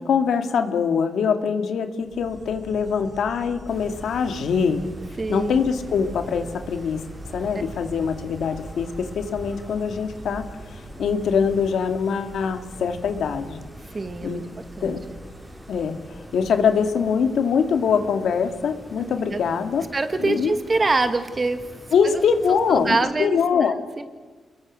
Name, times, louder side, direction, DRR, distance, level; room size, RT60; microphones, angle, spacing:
voice 1, 0.0-4.8 5.3-7.0 7.3-13.6 14.2-14.4 14.8-15.0 15.7-19.9 20.2-20.5 21.9-23.8, left 6 dB, 80° left, 7 dB, 2.0 m, -23 dB
Insect, 2.0-17.1, right 2 dB, 55° right, 5.5 m, -43 dB
sound 1, 3.7-23.0, equal, 5° right, 4.6 m, -44 dB
voice 2, 5.2-5.6 13.9-15.0 19.0-19.6 19.9-21.6 22.0-22.2 22.5-23.4 23.6-24.0, right 3 dB, 35° right, 9 dB, 2.0 m, -25 dB
27.5 x 21.5 x 6.5 m, 1.4 s
cardioid pair, 85°, 0 cm